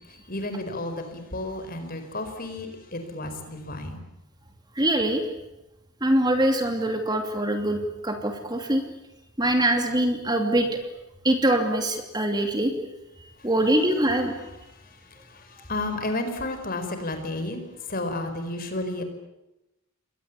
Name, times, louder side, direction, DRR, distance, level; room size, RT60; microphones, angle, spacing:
voice 1, 0.3-4.0 15.3-15.4 15.7-19.0, left 2 dB, 40° left, 7 dB, 4.8 m, -32 dB
voice 2, 4.8-5.2 6.0-8.8 9.4-10.7 11.2-12.7 13.4-14.3, right 1 dB, 20° right, 5 dB, 2.8 m, -23 dB
29.5 x 22.5 x 8.5 m, 0.94 s
head